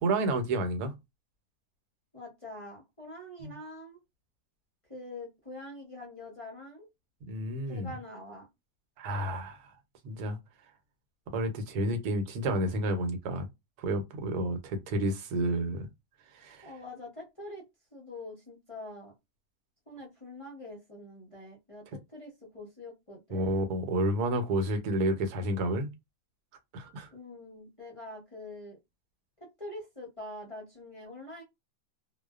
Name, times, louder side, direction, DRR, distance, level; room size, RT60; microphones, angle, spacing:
voice 1, 0.0-0.9 3.4-3.5 7.3-7.9 9.0-9.7 10.0-10.4 11.3-13.5 13.8-15.9 16.3-16.7 23.3-25.9 26.7-27.1, right 1 dB, 85° right, 1.2 m, -30 dB
voice 2, 2.1-4.0 4.9-6.9 7.7-8.5 16.6-17.6 17.9-19.1 19.9-23.7 27.1-28.8 29.4-31.4, left 1 dB, 35° left, 0.6 m, -45 dB
2.5 x 2.1 x 2.3 m
omnidirectional pair, 1.6 m